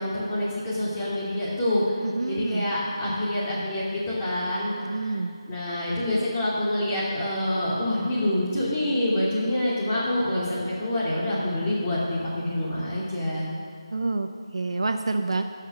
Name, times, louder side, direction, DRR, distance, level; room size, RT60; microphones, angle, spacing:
voice 1, 0.0-5.2 5.5-13.5, left 1 dB, 20° left, -9 dB, 2.6 m, -27 dB
voice 2, 2.0-2.7 4.8-5.3 13.9-15.4, right 3 dB, 70° right, 7 dB, 0.6 m, -28 dB
12.5 x 5.8 x 6.0 m, 2.1 s
figure-of-eight pair, 165°, 3 cm